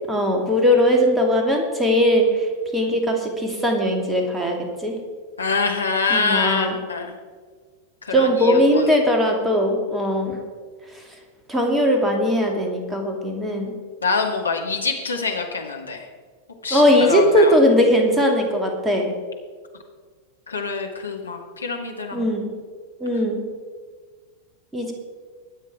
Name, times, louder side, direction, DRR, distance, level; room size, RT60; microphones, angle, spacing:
voice 1, 0.1-2.5 2.7-5.0 6.1-6.7 8.1-10.4 11.5-13.7 16.7-19.1 22.1-22.5 23.0-23.5 24.7-24.9, equal, 10° right, 2 dB, 2.5 m, -19 dB
voice 2, 5.4-7.1 8.0-8.9 14.0-16.0 16.6-17.6 20.5-22.3, left 4 dB, 75° left, 2 dB, 1.8 m, -25 dB
21.5 x 8.5 x 4.8 m, 1.5 s
figure-of-eight pair, 90°, 0 cm